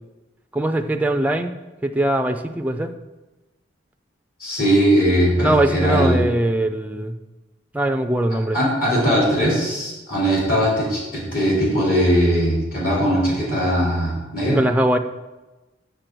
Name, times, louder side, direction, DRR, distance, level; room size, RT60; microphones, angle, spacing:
voice 1, 0.5-1.5 1.8-2.9 5.4-7.1 7.7-8.6 14.5-15.0, right 1 dB, 10° right, 7 dB, 0.4 m, -21 dB
voice 2, 4.4-6.2 8.5-14.6, equal, 50° left, -5 dB, 3.1 m, -19 dB
6.7 x 6.6 x 6.0 m, 1.1 s
head